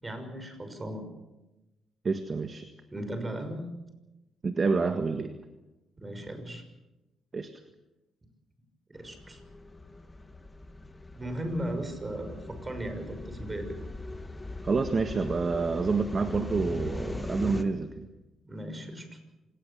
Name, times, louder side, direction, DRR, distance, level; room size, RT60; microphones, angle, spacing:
voice 1, 0.0-1.1 2.9-3.7 6.0-6.6 8.9-9.4 11.2-13.8 18.4-19.2, right 1 dB, 20° right, 7 dB, 6.0 m, -36 dB
voice 2, 2.0-2.7 4.4-5.3 7.3-7.5 14.6-18.1, right 4 dB, 35° right, 7 dB, 1.6 m, -28 dB
sound 1, 8.9-17.6, left 2 dB, 20° left, 1.8 m, -40 dB
26.5 x 19.5 x 7.1 m, 1.0 s
cardioid pair, 90°, 0 cm